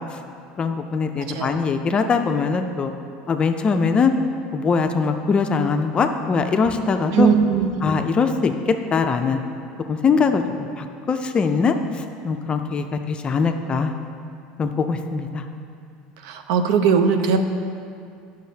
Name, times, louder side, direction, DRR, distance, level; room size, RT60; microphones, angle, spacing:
voice 1, 0.6-2.9 3.3-4.1 4.5-7.3 7.8-9.4 9.9-13.9 14.6-15.5, left 5 dB, 30° left, 6 dB, 0.4 m, -22 dB
voice 2, 7.1-7.7 16.2-17.4, right 6 dB, 75° right, 7 dB, 0.6 m, -19 dB
10.0 x 6.3 x 2.8 m, 2.4 s
supercardioid pair, 120°, 4 cm